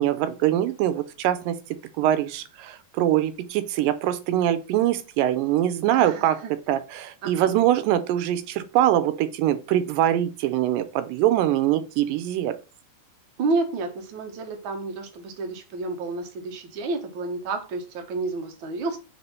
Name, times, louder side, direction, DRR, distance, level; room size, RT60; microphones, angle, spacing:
voice 1, 0.0-1.6 2.0-6.4 6.7-12.5, right 12 dB, 85° right, 12 dB, 2.3 m, -23 dB
voice 2, 5.9-6.5 7.2-7.5 13.4-19.0, right 3 dB, 60° right, 4 dB, 1.3 m, -30 dB
4.8 x 4.3 x 5.4 m, 0.32 s
omnidirectional pair, 3.9 m